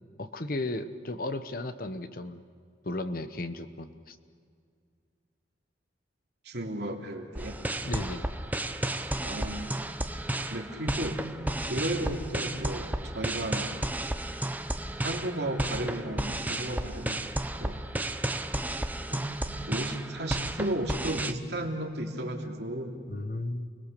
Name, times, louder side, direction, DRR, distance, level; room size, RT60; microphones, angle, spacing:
voice 1, 0.2-2.4 2.8-4.2 7.8-8.3 23.1-23.7, left 2 dB, 50° left, 10 dB, 1.0 m, -35 dB
voice 2, 6.4-7.6 9.2-9.7 10.5-11.2 11.7-13.8 15.0-17.2 17.6-17.8 19.1-19.3 19.7-23.0, right 1 dB, 60° right, 1 dB, 2.9 m, -34 dB
sound 1, 7.3-21.3, right 1 dB, 10° right, 0.7 m, -33 dB
29.5 x 21.0 x 6.8 m, 2.2 s
head